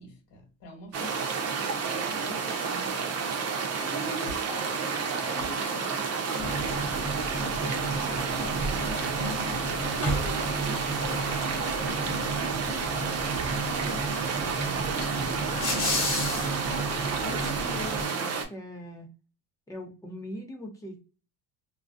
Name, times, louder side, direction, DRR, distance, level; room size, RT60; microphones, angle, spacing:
voice 1, 0.0-3.1 3.8-16.4, left 1 dB, 55° left, 1.2 m, -44 dB
sound 1, 0.9-18.4, right 5 dB, 40° right, 0.6 m, -30 dB
sound 2, 6.4-18.1, right 1 dB, 30° left, 1.2 m, -33 dB
voice 2, 17.2-19.1 19.7-21.0, left 1 dB, 10° left, 0.7 m, -40 dB
2.2 x 2.2 x 2.5 m
cardioid pair, 105°, 41 cm